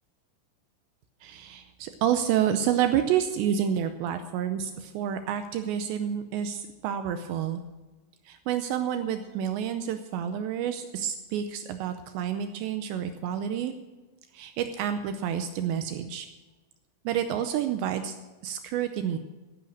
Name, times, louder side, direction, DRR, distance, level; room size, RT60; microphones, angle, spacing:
voice 1, 1.2-7.6 8.3-13.7 14.3-16.3 17.1-18.2 18.4-19.2, right 9 dB, 85° right, 8 dB, 2.7 m, -29 dB
15.5 x 10.0 x 6.3 m, 1.2 s
omnidirectional pair, 5.7 m